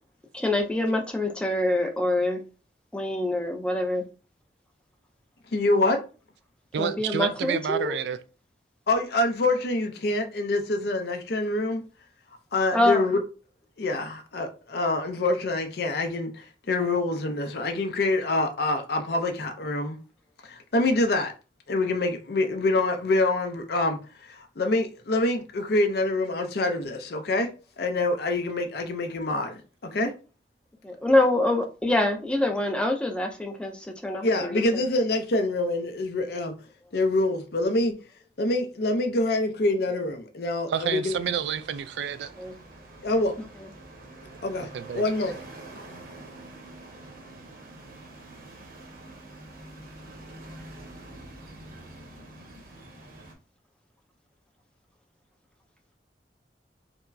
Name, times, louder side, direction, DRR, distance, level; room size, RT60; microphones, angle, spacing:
voice 1, 0.3-2.4 2.9-4.0 6.8-7.9 12.7-13.1 30.8-34.6 42.4-42.5, left 1 dB, 5° left, 0.4 m, -25 dB
voice 2, 5.5-6.0 8.9-11.8 12.5-13.2 13.8-20.0 20.5-21.3 21.7-27.5 27.8-30.1 34.2-36.5 36.9-37.9 38.4-41.1 43.0-43.3 44.4-45.3 45.9-46.0, left 2 dB, 60° left, 0.5 m, -26 dB
voice 3, 6.7-8.2 40.7-42.3 44.7-45.0, right 8 dB, 70° right, 0.3 m, -29 dB
sound 1, 41.0-53.3, right 2 dB, 50° right, 0.8 m, -46 dB
4.4 x 2.0 x 2.6 m
head